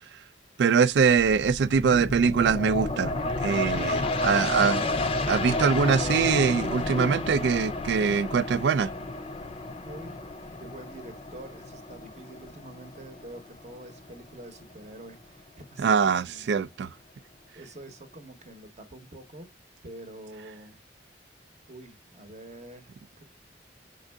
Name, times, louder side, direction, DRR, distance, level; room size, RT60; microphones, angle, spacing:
voice 1, 0.6-4.8 5.3-8.9 15.8-16.9, right 6 dB, 65° right, 0.3 m, -23 dB
sound 1, 1.2-14.3 14.7-14.8, left 2 dB, 30° left, 0.5 m, -31 dB
voice 2, 9.8-16.4 17.5-19.5 19.8-20.8 21.7-23.2, right 1 dB, 40° right, 0.9 m, -46 dB
5.3 x 3.8 x 2.2 m
head